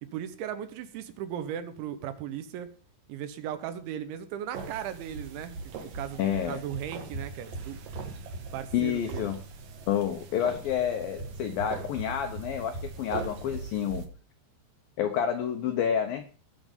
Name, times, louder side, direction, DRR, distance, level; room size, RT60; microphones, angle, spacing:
voice 1, 0.1-2.7 3.1-6.2 6.5-7.8 8.5-9.3, right 10 dB, 80° right, 10 dB, 3.4 m, -37 dB
sound 1, 4.5-14.1, right 4 dB, 60° right, 2.6 m, -40 dB
voice 2, 6.2-6.6 8.7-9.4 9.9-14.0 15.0-16.2, left 9 dB, 80° left, 7 dB, 2.0 m, -29 dB
19.0 x 6.3 x 5.3 m, 0.38 s
omnidirectional pair, 5.4 m